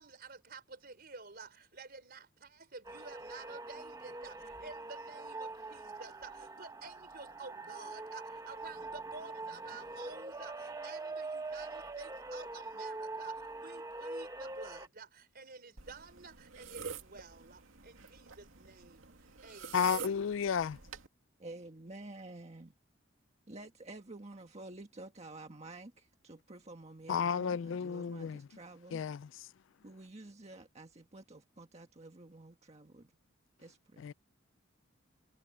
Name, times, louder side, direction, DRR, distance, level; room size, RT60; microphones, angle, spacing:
voice 1, 0.0-20.2, right 4 dB, 50° right, 4.0 m, -51 dB
sound 1, 2.8-14.9, right 2 dB, 15° right, 1.1 m, -43 dB
sound 2, 15.8-21.1, right 6 dB, 80° right, 2.4 m, -47 dB
voice 2, 19.7-20.8 27.1-28.4 28.9-29.3 34.0-34.1, left 7 dB, 65° left, 0.4 m, -32 dB
voice 3, 21.4-22.7 23.5-29.0 29.8-33.1 33.6-34.1, right 2 dB, 35° right, 1.6 m, -50 dB
head